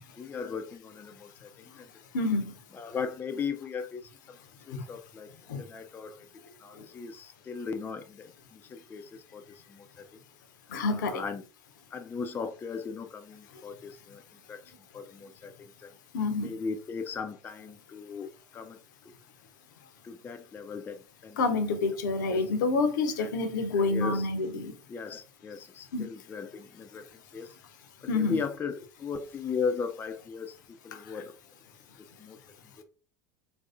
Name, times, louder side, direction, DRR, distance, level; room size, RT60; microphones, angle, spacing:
voice 1, 0.2-1.9 2.7-4.4 4.7-6.3 6.6-10.1 10.8-11.4 11.9-15.9 16.4-19.1 20.0-21.7 22.3-22.6 23.2-24.3 24.9-27.6 28.0-30.6 30.8-31.3 32.2-32.4 32.8-32.9, left 5 dB, 20° left, 0.4 m, -38 dB
voice 2, 10.7-11.2 16.1-16.5 21.4-24.7 25.9-26.1 28.1-28.4, left 3 dB, 65° left, 0.6 m, -27 dB
3.2 x 2.6 x 2.4 m
figure-of-eight pair, 80°, 11 cm